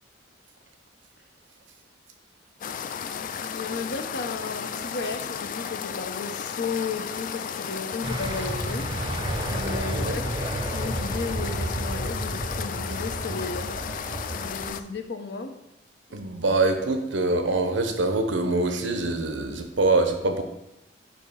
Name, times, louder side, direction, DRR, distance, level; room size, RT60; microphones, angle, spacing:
sound 1, 2.6-14.8, left 7 dB, 45° left, 0.3 m, -34 dB
voice 1, 3.5-8.9 9.5-13.7 14.3-15.5, left 4 dB, 60° left, 6 dB, 0.7 m, -34 dB
sound 2, 8.0-14.7, right 1 dB, 25° right, 0.7 m, -31 dB
voice 2, 9.8-10.2 16.1-20.4, right 2 dB, 70° right, 6 dB, 0.8 m, -24 dB
8.5 x 2.9 x 5.5 m, 0.90 s
head